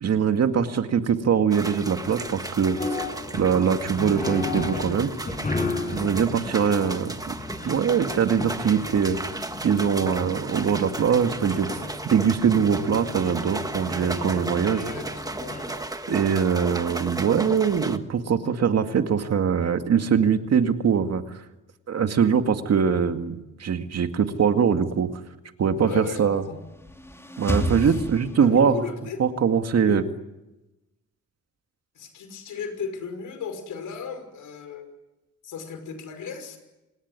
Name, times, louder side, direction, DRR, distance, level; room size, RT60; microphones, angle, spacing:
voice 1, 0.0-2.8 3.3-5.1 5.9-7.3 7.6-9.2 9.6-14.8 16.1-21.4 21.9-25.1 25.6-26.4 27.4-28.8 29.2-30.0, right 7 dB, 55° right, 7 dB, 2.1 m, -22 dB
sound 1, 1.5-18.0, right 2 dB, 10° right, 1.6 m, -35 dB
sound 2, 2.6-15.9, left 3 dB, 25° left, 7.7 m, -35 dB
voice 2, 5.8-6.2 14.7-15.6 25.8-26.6 27.8-28.0 28.3-29.2 29.8-30.0 32.0-34.9 35.4-36.6, left 6 dB, 80° left, 9 dB, 5.8 m, -36 dB
sound 3, 26.5-28.9, equal, 10° left, 3.1 m, -30 dB
27.5 x 19.5 x 9.6 m, 0.99 s
cardioid pair, 115°, 31 cm